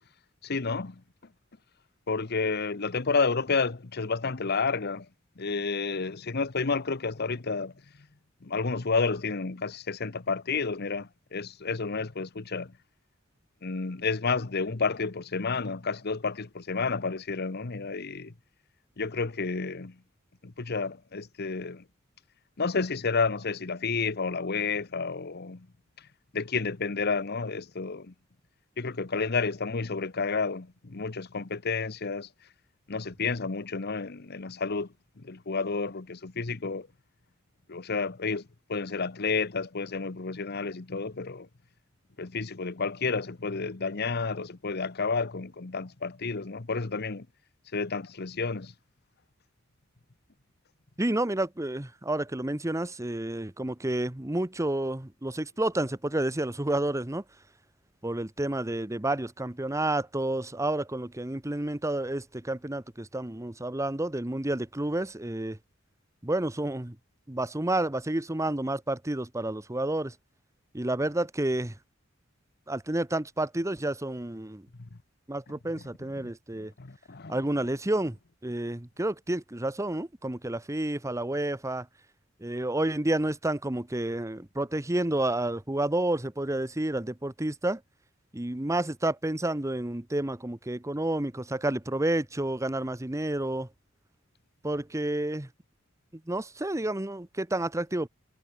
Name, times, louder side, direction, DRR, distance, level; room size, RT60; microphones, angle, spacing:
voice 1, 0.4-1.0 2.1-5.1 5.4-7.7 8.4-12.7 13.6-18.3 19.0-20.0 20.4-21.8 22.6-25.7 26.3-28.1 28.8-32.3 32.9-34.9 35.2-36.9 37.7-38.4 38.7-41.5 42.2-47.3 47.7-48.7 74.8-75.0 75.8-76.3 76.6-77.5, left 4 dB, 55° left, 1.0 m, -30 dB
voice 2, 51.0-57.2 58.0-65.6 66.2-67.0 67.3-70.1 70.7-71.7 72.7-74.7 75.3-76.7 77.3-78.2 78.4-81.9 82.4-87.8 88.3-93.7 94.6-95.5 96.3-98.1, right 1 dB, 15° right, 1.0 m, -30 dB
head